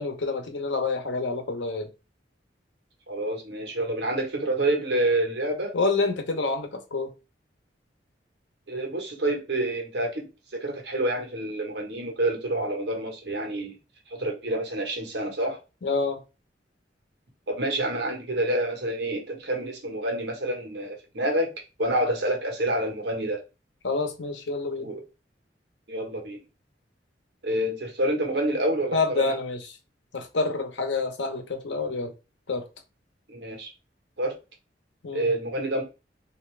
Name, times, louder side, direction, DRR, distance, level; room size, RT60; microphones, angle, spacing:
voice 1, 0.0-1.9 5.7-7.1 15.8-16.2 23.8-24.9 28.9-29.7 30.1-32.1 32.5-32.7 35.0-35.3, left 3 dB, 85° left, 0.8 m, -27 dB
voice 2, 3.1-5.7 8.7-10.3 10.5-13.8 14.1-15.6 17.5-21.5 21.8-23.4 24.8-25.0 25.9-26.4 27.4-29.4 33.3-33.7 34.2-34.4 35.1-35.8, right 1 dB, 65° right, 1.2 m, -28 dB
3.5 x 2.7 x 3.2 m
head